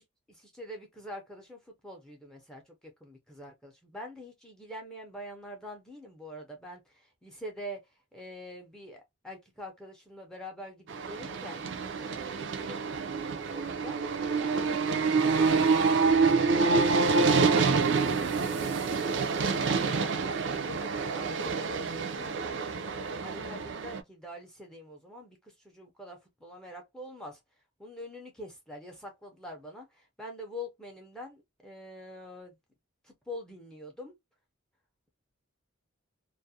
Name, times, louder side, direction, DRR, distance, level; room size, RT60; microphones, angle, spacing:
voice 1, 0.3-7.8 8.1-11.7 12.0-14.9 15.4-17.0 17.4-19.4 19.7-27.4 27.8-32.5 33.0-34.1, equal, 5° left, 0.5 m, -45 dB
Train leaving station, 10.9-24.0, right 4 dB, 55° right, 0.4 m, -27 dB
2.3 x 2.1 x 2.6 m
head